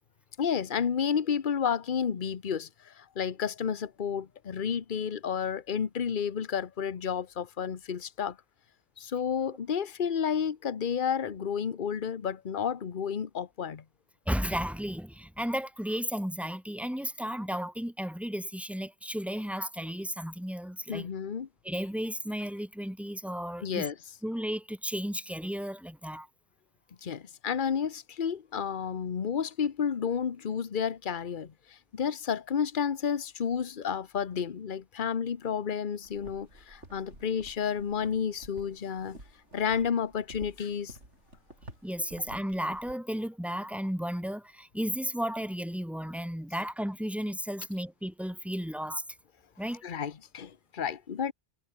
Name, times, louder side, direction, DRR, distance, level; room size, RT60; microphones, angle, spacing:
voice 1, 0.4-8.4 9.0-13.8 20.9-21.5 23.6-23.9 27.0-31.5 31.9-39.2 39.5-40.9 49.8-51.3, left 7 dB, 50° left, 1.1 m, -31 dB
voice 2, 14.3-21.1 21.6-23.9 24.2-26.3 41.8-49.0 49.6-49.8, equal, ahead, 1.7 m, -34 dB
sound 1, 36.0-42.9, right 1 dB, 80° right, 8.2 m, -51 dB
omnidirectional pair, 1.2 m